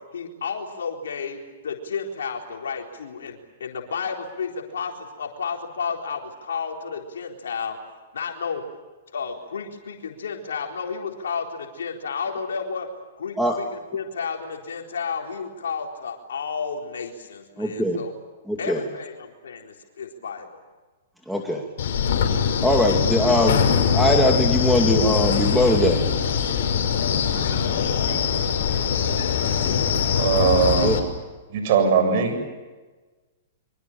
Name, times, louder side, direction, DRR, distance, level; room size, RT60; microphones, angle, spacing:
voice 1, 0.1-7.8 8.1-8.6 9.1-12.9 13.2-18.1 18.6-20.5, left 5 dB, 85° left, 1 dB, 4.0 m, -32 dB
voice 2, 17.6-18.0 18.5-18.8 21.3-21.6 22.6-23.6 23.9-26.0 30.8-31.0, equal, ahead, 1 dB, 2.7 m, -21 dB
Wind, 21.8-31.0, left 7 dB, 65° left, 6.0 m, -22 dB
voice 3, 29.7-30.9 31.5-32.4, right 6 dB, 55° right, 7 dB, 7.5 m, -21 dB
26.5 x 25.0 x 7.4 m, 1.3 s
hypercardioid pair, 135°, 0 cm